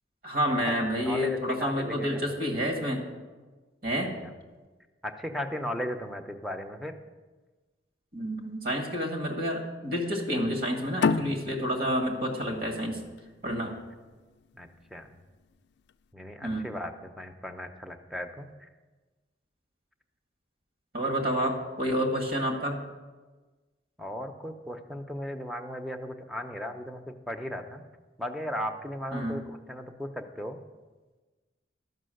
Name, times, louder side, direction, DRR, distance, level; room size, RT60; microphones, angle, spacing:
voice 1, 0.2-3.0 3.8-4.1 8.1-13.0 13.4-13.7 16.4-16.7 20.9-22.8 29.1-29.4, equal, 55° right, 1 dB, 2.0 m, -29 dB
voice 2, 0.8-2.4 4.2-4.3 5.0-7.0 14.5-15.1 16.1-18.7 24.0-27.8 28.2-30.6, equal, ahead, 5 dB, 0.7 m, -36 dB
sound 1, 11.0-14.2, left 5 dB, 65° left, 0.4 m, -30 dB
12.0 x 6.1 x 7.7 m, 1.3 s
head